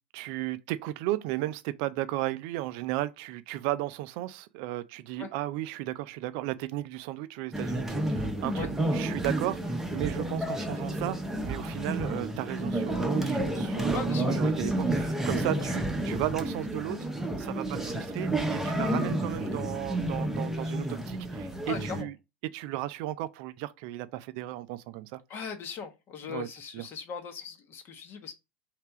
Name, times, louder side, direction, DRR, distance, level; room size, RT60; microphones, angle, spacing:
voice 1, 0.1-11.2 11.4-17.1 17.4-22.1 22.5-25.2 26.3-26.5 26.7-26.8, right 16 dB, 55° right, 0.4 m, -34 dB
sound 1, 7.5-22.0, right 1 dB, 5° right, 0.8 m, -30 dB
voice 2, 13.9-14.3 15.3-15.7 21.6-22.1 25.3-28.3, left 6 dB, 40° left, 0.9 m, -39 dB
3.3 x 2.8 x 4.6 m
figure-of-eight pair, 80°, 6 cm